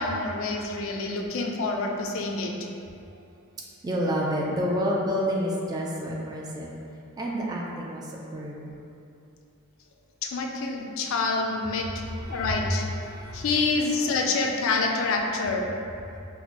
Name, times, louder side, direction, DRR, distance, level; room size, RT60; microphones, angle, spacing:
voice 1, 0.0-2.7 10.2-11.9 12.3-12.8 13.3-15.6, left 3 dB, 65° left, 1 dB, 0.3 m, -27 dB
voice 2, 3.8-6.7 7.2-8.8 12.1-12.6 13.1-13.5, equal, 20° right, -3 dB, 0.3 m, -29 dB
4.2 x 2.1 x 2.9 m, 2.6 s
head